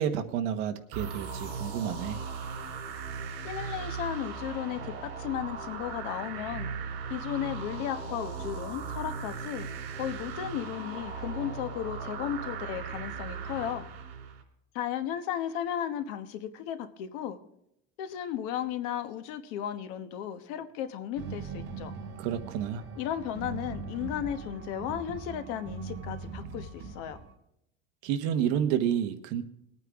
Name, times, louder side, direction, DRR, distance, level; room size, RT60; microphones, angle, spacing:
voice 1, 0.0-2.2 22.2-22.8 28.0-29.4, right 9 dB, 55° right, 8 dB, 1.2 m, -30 dB
sound 1, 0.9-14.4, right 5 dB, 80° right, 3.6 m, -38 dB
voice 2, 3.4-6.7 7.1-9.7 9.9-13.9 14.7-17.4 18.0-21.9 23.0-27.2, left 10 dB, 55° left, 10 dB, 1.2 m, -35 dB
sound 2, 21.2-27.3, right 5 dB, 35° right, 2.6 m, -41 dB
21.5 x 9.1 x 3.6 m, 0.79 s
cardioid pair, 180°, 31 cm